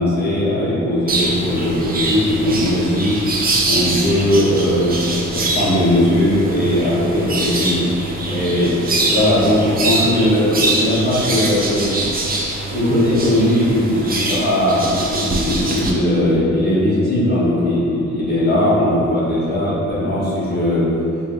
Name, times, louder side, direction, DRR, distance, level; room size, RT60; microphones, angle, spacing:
voice 1, 0.0-3.2 3.6-7.9 8.2-8.7 9.0-11.9 12.7-20.9, left 1 dB, 35° left, -10 dB, 1.3 m, -18 dB
sound 1, 1.1-15.9, right 2 dB, 30° right, 0.4 m, -23 dB
5.4 x 2.4 x 2.7 m, 2.6 s
wide cardioid pair, 120°, 30 cm